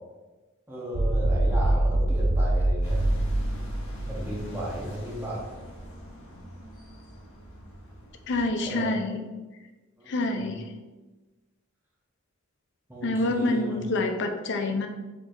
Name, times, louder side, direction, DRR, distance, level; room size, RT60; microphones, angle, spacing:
voice 1, 0.7-3.1 4.1-5.4 8.7-8.9 10.0-10.6 12.9-13.8, equal, 10° right, -5 dB, 0.9 m, -35 dB
sound 1, 0.9-5.1, right 1 dB, 75° right, 0.5 m, -24 dB
sound 2, 2.8-8.6, equal, 75° left, 1.4 m, -42 dB
voice 2, 8.3-9.2 10.1-10.6 13.0-14.9, left 2 dB, 55° left, 5 dB, 0.5 m, -27 dB
4.5 x 4.5 x 2.5 m, 1.2 s
head